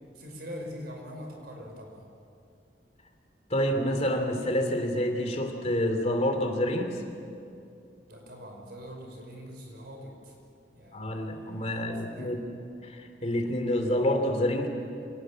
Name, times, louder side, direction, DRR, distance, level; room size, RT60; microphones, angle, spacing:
voice 1, 0.2-2.1 8.1-10.3 10.7-12.3, equal, 65° right, 1 dB, 5.6 m, -43 dB
voice 2, 3.5-7.0 10.9-12.4 12.8-14.7, equal, 40° left, 5 dB, 2.9 m, -28 dB
26.5 x 19.0 x 7.9 m, 2.5 s
head